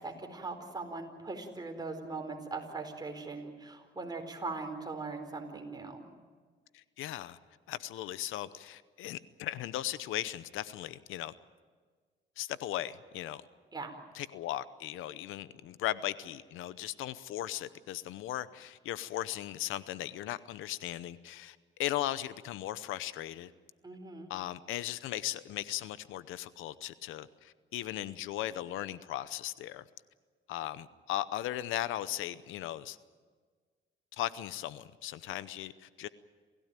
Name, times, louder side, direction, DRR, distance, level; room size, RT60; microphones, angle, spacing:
voice 1, 0.0-6.1 13.7-14.0 23.8-24.3, right 3 dB, 20° right, 3 dB, 4.5 m, -40 dB
voice 2, 6.7-7.4 7.7-11.3 12.4-13.4 14.1-23.5 24.3-29.8 30.5-33.0 34.2-36.1, left 13 dB, 90° left, 16 dB, 0.8 m, -37 dB
27.5 x 16.0 x 9.1 m, 1.5 s
cardioid pair, 90°, 20 cm